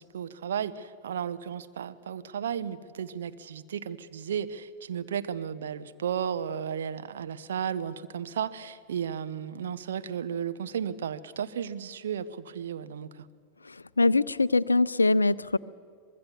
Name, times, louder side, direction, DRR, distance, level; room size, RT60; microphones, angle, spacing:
voice 1, 0.0-13.2, right 8 dB, 65° right, 11 dB, 0.9 m, -34 dB
voice 2, 13.7-15.6, left 3 dB, 80° left, 19 dB, 0.5 m, -23 dB
24.5 x 21.0 x 7.1 m, 2.1 s
figure-of-eight pair, 90°, 0 cm